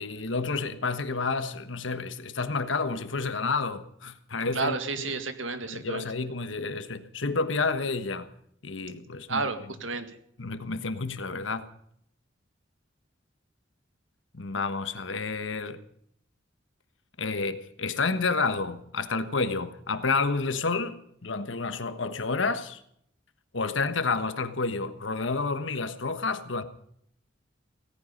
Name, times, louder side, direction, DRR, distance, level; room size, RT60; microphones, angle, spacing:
voice 1, 0.0-4.7 5.6-8.3 8.6-9.5 10.4-11.7 14.3-15.8 17.2-22.8 23.5-26.6, left 4 dB, 75° left, 1.4 m, -30 dB
voice 2, 4.5-6.1 9.3-10.2, right 3 dB, 85° right, 1.8 m, -31 dB
17.5 x 15.0 x 5.3 m
head